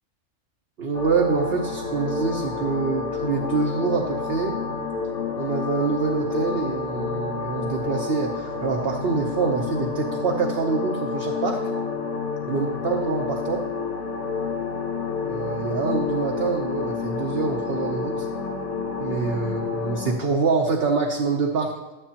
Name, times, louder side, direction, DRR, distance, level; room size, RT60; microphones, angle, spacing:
voice 1, 0.8-4.6 5.4-11.6 12.5-13.6 15.2-18.3 19.0-21.7, right 4 dB, 55° right, 0 dB, 0.9 m, -25 dB
sound 1, 0.9-20.2, left 5 dB, 65° left, 1.3 m, -29 dB
12.0 x 7.7 x 2.9 m, 1.1 s
omnidirectional pair, 1.3 m